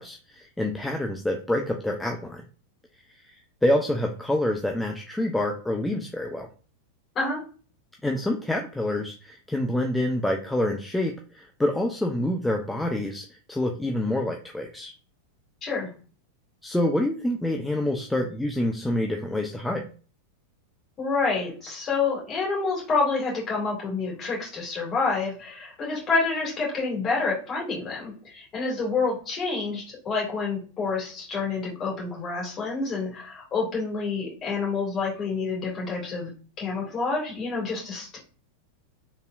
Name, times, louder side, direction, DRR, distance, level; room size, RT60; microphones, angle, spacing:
voice 1, 0.0-2.4 3.2-6.5 8.0-14.9 16.6-19.9, left 1 dB, 5° left, 2 dB, 0.4 m, -27 dB
voice 2, 21.0-36.3 36.6-38.2, left 4 dB, 30° left, -3 dB, 2.2 m, -28 dB
4.1 x 3.4 x 2.5 m, 0.38 s
figure-of-eight pair, 90°, 0 cm